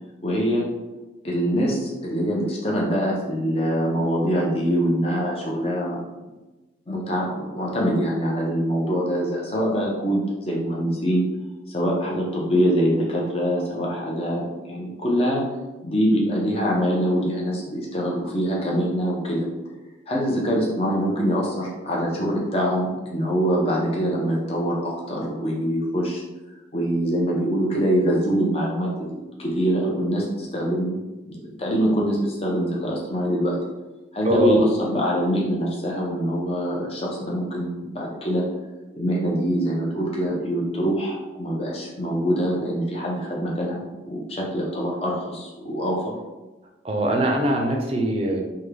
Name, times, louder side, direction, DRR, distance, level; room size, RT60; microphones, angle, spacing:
voice 1, 0.2-0.7 1.2-6.0 6.9-11.2 11.7-15.4 15.8-19.5 20.1-26.2 26.7-33.6 34.1-38.4 38.9-46.1, equal, 30° left, -3 dB, 0.7 m, -24 dB
voice 2, 34.2-34.6 46.8-48.4, right 1 dB, 30° right, 1 dB, 0.5 m, -22 dB
3.6 x 2.2 x 3.2 m, 1.1 s
head